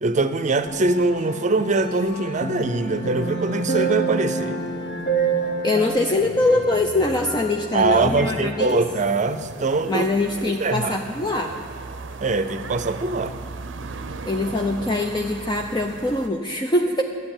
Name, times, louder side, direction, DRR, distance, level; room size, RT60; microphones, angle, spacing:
voice 1, 0.0-4.6 7.7-10.1 10.6-11.0 12.2-13.3, right 3 dB, 40° right, 11 dB, 0.6 m, -22 dB
Musical instrument, 0.7-16.2, left 2 dB, 70° left, 1.4 m, -39 dB
sound 1, 2.4-7.8 8.2-8.3, right 5 dB, 45° left, 1.1 m, -28 dB
voice 2, 5.6-8.8 9.8-11.5 14.3-17.0, left 2 dB, 25° left, 2 dB, 0.6 m, -23 dB
sound 2, 8.7-16.3, right 4 dB, 90° right, 0.6 m, -37 dB
11.0 x 8.2 x 8.8 m, 2.4 s
head